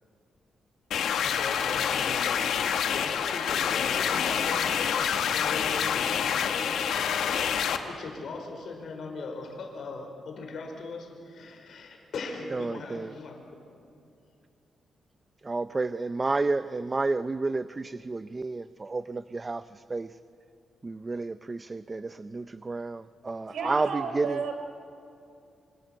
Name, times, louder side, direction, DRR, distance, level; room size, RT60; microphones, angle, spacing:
sound 1, 0.9-7.8, left 8 dB, 85° left, 1.8 m, -27 dB
voice 1, 1.2-13.8, left 3 dB, 65° left, 2 dB, 5.3 m, -39 dB
voice 2, 12.5-13.1 15.4-20.1 20.8-24.4, right 3 dB, 25° right, 12 dB, 0.6 m, -31 dB
voice 3, 23.5-24.5, right 5 dB, 75° right, 6 dB, 4.0 m, -32 dB
27.0 x 26.5 x 8.0 m, 2.5 s
cardioid pair, 120°, 0 cm